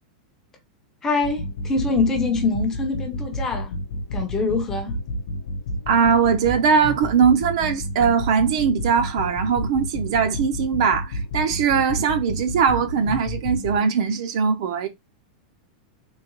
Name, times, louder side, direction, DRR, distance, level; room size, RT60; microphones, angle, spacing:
voice 1, 1.0-3.7 4.1-5.0, left 3 dB, 10° left, 0.6 m, -24 dB
sound 1, 1.2-13.8, equal, 75° left, 0.7 m, -30 dB
voice 2, 5.9-14.9, right 6 dB, 50° right, 0.5 m, -20 dB
3.7 x 2.2 x 2.9 m
supercardioid pair, 175°, 4 cm